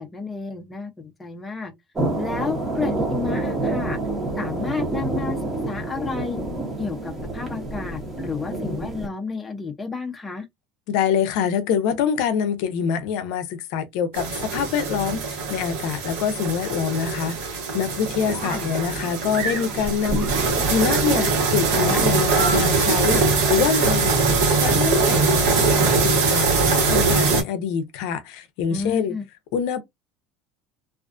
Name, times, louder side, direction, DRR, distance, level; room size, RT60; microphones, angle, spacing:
voice 1, 0.0-1.7 2.2-4.0 4.4-5.4 5.7-6.4 6.8-10.5 18.4-18.7 23.1-23.3 28.7-29.2, left 4 dB, 10° left, 0.5 m, -31 dB
sound 1, 2.0-9.1, right 2 dB, 15° right, 0.8 m, -28 dB
voice 2, 10.9-23.2 23.5-24.1 24.5-29.1 29.5-29.8, left 7 dB, 70° left, 0.5 m, -25 dB
sound 2, 14.1-27.4, right 4 dB, 90° right, 1.1 m, -22 dB
sound 3, 17.9-22.8, right 4 dB, 60° right, 0.8 m, -32 dB
2.4 x 2.4 x 2.3 m
cardioid pair, 145°, 0 cm